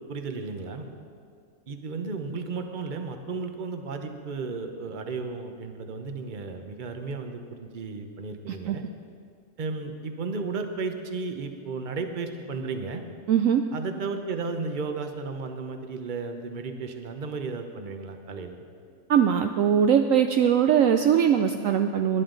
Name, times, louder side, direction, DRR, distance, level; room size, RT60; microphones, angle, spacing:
voice 1, 0.1-0.9 1.7-8.8 9.6-13.0 13.7-18.6, right 4 dB, 40° right, 6 dB, 0.9 m, -34 dB
voice 2, 13.3-13.6 19.1-22.2, right 8 dB, 70° right, 6 dB, 0.9 m, -21 dB
20.0 x 10.5 x 3.9 m, 2.2 s
omnidirectional pair, 1.6 m